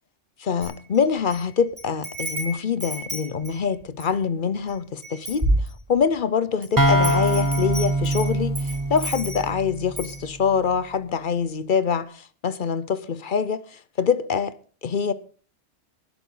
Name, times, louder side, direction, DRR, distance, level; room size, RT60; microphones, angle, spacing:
voice 1, 0.4-5.5 5.9-15.1, left 6 dB, 50° left, 0.9 m, -25 dB
Wind chime, 0.6-1.4 1.8-4.2 4.7-4.8 5.0-6.1 6.6-9.6 10.0-10.2, right 1 dB, 40° right, 6.2 m, -30 dB
sound 1, 6.8-10.4, right 1 dB, 20° right, 0.8 m, -24 dB
19.5 x 11.0 x 3.9 m
omnidirectional pair, 1.2 m